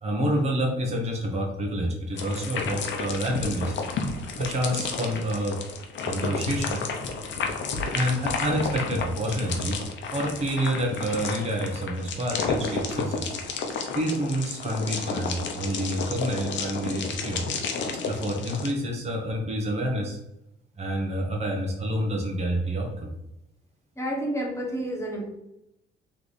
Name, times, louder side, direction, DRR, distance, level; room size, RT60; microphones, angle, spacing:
voice 1, 0.0-3.8 4.4-5.6 6.0-6.8 7.9-9.8 10.1-13.3 13.9-17.4 18.1-20.2 20.8-23.1, right 1 dB, 35° right, -1 dB, 1.0 m, -28 dB
sound 1, 2.2-18.7, left 4 dB, 70° left, 0.7 m, -31 dB
voice 2, 24.0-25.3, right 1 dB, 15° left, -2 dB, 1.5 m, -30 dB
3.3 x 3.3 x 4.1 m, 0.86 s
cardioid pair, 90°, 20 cm